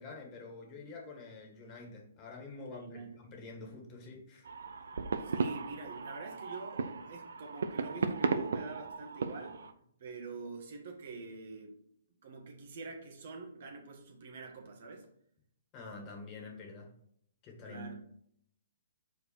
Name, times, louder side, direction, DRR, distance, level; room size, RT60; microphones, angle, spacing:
voice 1, 0.0-4.5 15.7-16.9 17.4-17.9, left 3 dB, 30° left, 1 dB, 1.7 m, -47 dB
voice 2, 2.7-3.2 5.2-9.6 10.0-11.8 12.2-15.1 17.6-17.9, right 3 dB, 60° right, 2 dB, 1.6 m, -45 dB
sound 1, 4.5-9.7, right 5 dB, 75° right, 0.6 m, -36 dB
5.1 x 4.5 x 4.6 m, 0.68 s
hypercardioid pair, 140°, 0 cm